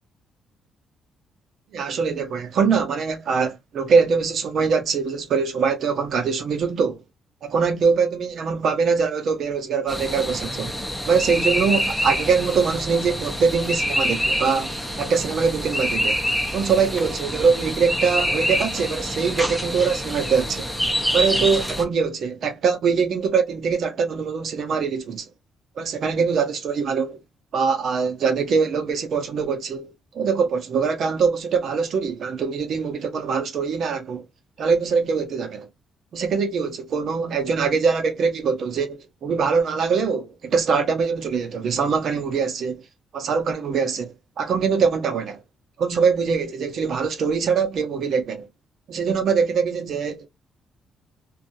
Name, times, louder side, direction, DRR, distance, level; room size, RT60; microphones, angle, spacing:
voice 1, 1.7-7.0 7.4-10.7 11.1-16.2 16.5-20.7 21.1-25.3 25.8-27.1 27.5-34.3 34.6-35.7 36.1-42.8 43.1-45.4 45.8-48.5 48.9-50.3, right 5 dB, 65° right, 0.8 m, -23 dB
sound 1, 9.9-21.8, equal, ahead, 0.8 m, -26 dB
2.6 x 2.4 x 2.6 m
cardioid pair, 90°, 0 cm